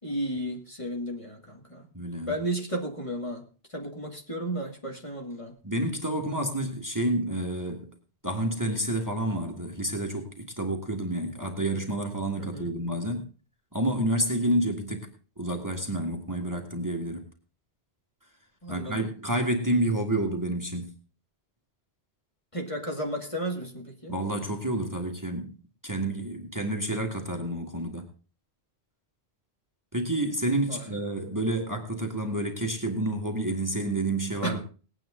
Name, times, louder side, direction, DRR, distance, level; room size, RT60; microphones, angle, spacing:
voice 1, 0.0-1.9 2.3-3.4 3.7-5.5 12.4-12.7 18.6-19.1 22.5-24.2 30.7-30.9 34.4-34.6, right 1 dB, 30° left, 1 dB, 2.2 m, -33 dB
voice 2, 1.9-2.4 5.6-7.9 8.2-13.2 13.7-15.1 15.4-17.3 18.7-21.0 24.1-25.5 25.8-28.1 29.9-34.6, right 1 dB, 15° right, 3 dB, 1.8 m, -29 dB
19.0 x 9.1 x 3.7 m, 0.36 s
omnidirectional pair, 1.1 m